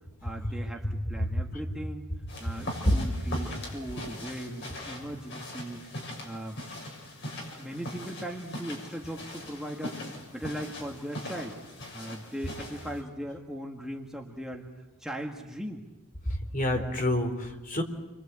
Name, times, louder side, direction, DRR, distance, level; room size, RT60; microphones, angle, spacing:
voice 1, 0.2-2.1 2.4-5.8 6.2-6.6 7.5-11.6 11.9-14.7 15.0-15.8 16.7-17.1, right 1 dB, ahead, 0 dB, 1.7 m, -39 dB
sound 1, 2.3-13.0, left 1 dB, 55° left, 6.7 m, -41 dB
voice 2, 16.3-17.8, left 1 dB, 40° left, 4 dB, 3.7 m, -27 dB
30.0 x 24.0 x 8.2 m, 1.1 s
head